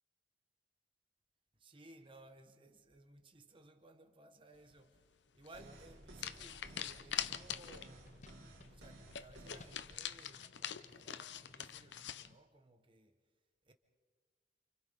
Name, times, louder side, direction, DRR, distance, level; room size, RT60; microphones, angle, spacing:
voice 1, 1.5-13.2 13.6-13.7, right 2 dB, 30° right, 1.3 m, -60 dB
sound 1, 5.4-5.6 6.2-8.0 8.3-8.4 8.6-8.7 9.1-12.3, left 10 dB, 80° left, 0.8 m, -43 dB
sound 2, 5.5-9.9, right 1 dB, 80° right, 3.2 m, -56 dB
sound 3, 7.2-12.4, left 3 dB, 40° left, 0.7 m, -63 dB
29.5 x 28.0 x 3.7 m
head